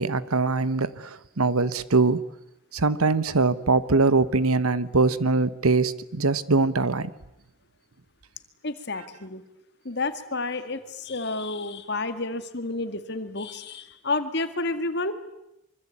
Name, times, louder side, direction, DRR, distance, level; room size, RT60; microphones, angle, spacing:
voice 1, 0.0-2.2 2.7-7.1, right 3 dB, 85° right, 1.2 m, -22 dB
voice 2, 8.6-9.4 9.8-15.1, left 3 dB, 50° left, 2.0 m, -30 dB
25.5 x 24.5 x 8.6 m
head